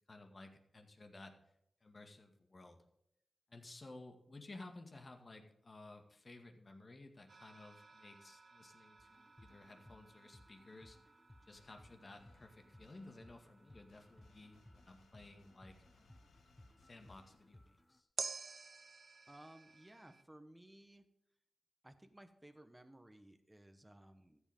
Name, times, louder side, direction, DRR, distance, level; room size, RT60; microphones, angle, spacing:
voice 1, 0.1-1.3 1.8-2.8 3.5-11.0 11.4-15.8 16.8-18.1, left 2 dB, 40° left, 5 dB, 1.9 m, -56 dB
sound 1, 7.3-16.7 18.2-20.2, right 4 dB, 55° right, 0.7 m, -53 dB
sound 2, 9.0-18.0, left 1 dB, 15° left, 0.8 m, -64 dB
sound 3, 11.5-17.9, left 4 dB, 90° left, 1.1 m, -70 dB
voice 2, 19.3-21.0 21.8-24.4, right 1 dB, 15° right, 8 dB, 1.1 m, -59 dB
14.0 x 8.1 x 3.7 m, 0.81 s
cardioid pair, 60°, 0 cm